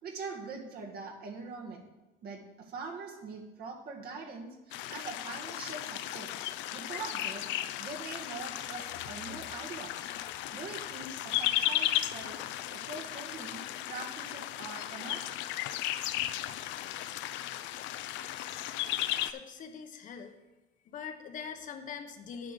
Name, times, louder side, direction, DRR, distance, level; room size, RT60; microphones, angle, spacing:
voice 1, 0.0-1.8 2.2-6.3 6.7-7.5 7.8-10.1 10.5-12.4 12.7-15.4, right 4 dB, 55° right, 1 dB, 1.9 m, -43 dB
sound 1, 4.7-19.3, left 13 dB, 80° left, 0.5 m, -35 dB
voice 2, 19.2-20.3 20.8-22.5, left 6 dB, 45° left, 6 dB, 0.9 m, -43 dB
9.5 x 5.0 x 7.6 m, 1.0 s
cardioid pair, 145°, 19 cm